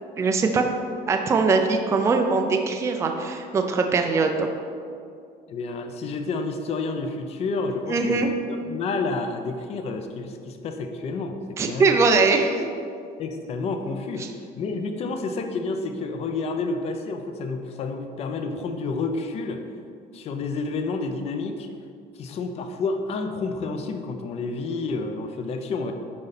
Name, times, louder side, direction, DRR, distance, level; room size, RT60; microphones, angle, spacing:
voice 1, 0.2-0.6 1.1-4.5 7.9-8.3 11.6-12.7, right 4 dB, 15° right, 4 dB, 0.4 m, -21 dB
voice 2, 5.5-12.0 13.2-19.6 20.1-21.7 22.1-25.9, left 3 dB, 35° left, 6 dB, 0.5 m, -30 dB
10.5 x 4.1 x 4.1 m, 2.3 s
cardioid pair, 175°, 18 cm